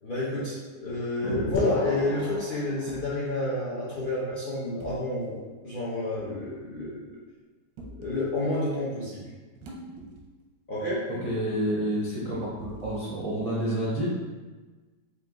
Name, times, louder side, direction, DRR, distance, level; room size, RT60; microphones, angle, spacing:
voice 1, 0.0-7.1 8.0-9.3 10.7-11.1, left 1 dB, 75° left, -8 dB, 0.4 m, -30 dB
sound 1, 0.9-1.2 2.9-3.2 4.8-5.0 6.1-6.3 7.8-8.2 9.6-10.4 10.8-10.9 12.6-13.1, right 1 dB, 85° right, 1.4 m, -43 dB
sound 2, 1.5-3.5, left 3 dB, 90° left, 1.3 m, -32 dB
voice 2, 11.2-14.1, right 1 dB, 65° right, -8 dB, 0.3 m, -29 dB
4.3 x 2.5 x 3.6 m, 1.3 s
omnidirectional pair, 1.9 m